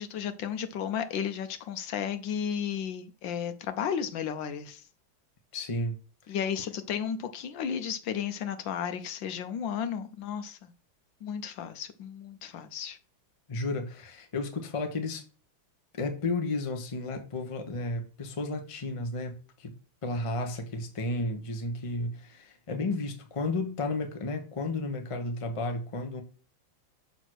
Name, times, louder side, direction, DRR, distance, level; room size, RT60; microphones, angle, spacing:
voice 1, 0.0-4.8 6.3-10.7 11.2-13.0, left 8 dB, 70° left, 1.4 m, -33 dB
voice 2, 5.5-6.0 6.3-6.4 13.5-15.2 15.9-19.7 20.0-26.2, left 2 dB, 25° left, 0.7 m, -33 dB
6.1 x 4.0 x 6.2 m
omnidirectional pair, 2.2 m